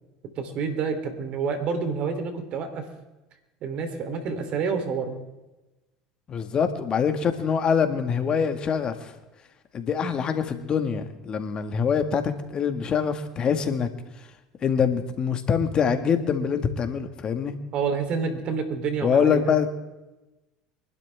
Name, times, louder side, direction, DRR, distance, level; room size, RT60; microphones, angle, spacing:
voice 1, 0.4-2.8 3.6-5.1 17.7-19.4, right 5 dB, 55° right, 6 dB, 3.2 m, -28 dB
voice 2, 6.3-9.1 9.7-13.9 14.6-17.6 19.0-19.7, left 6 dB, 40° left, 8 dB, 1.7 m, -24 dB
24.5 x 12.0 x 3.5 m, 1.0 s
hypercardioid pair, 80°, 2 cm